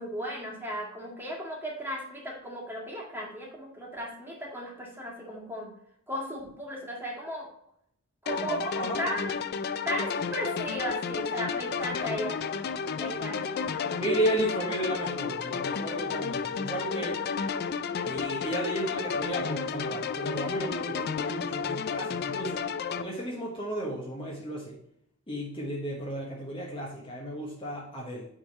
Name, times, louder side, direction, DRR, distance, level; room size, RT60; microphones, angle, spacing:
voice 1, 0.0-5.7 6.1-7.5 8.2-8.6 9.0-9.3 9.8-12.4 13.0-14.0, equal, 10° right, -2 dB, 1.8 m, -36 dB
sound 1, 8.3-23.0, left 6 dB, 45° left, 0.4 m, -32 dB
voice 2, 8.5-9.2 14.0-17.2 18.0-22.7 22.9-24.8 25.3-28.3, right 1 dB, 25° left, -2 dB, 1.2 m, -33 dB
9.0 x 3.5 x 4.1 m, 0.74 s
head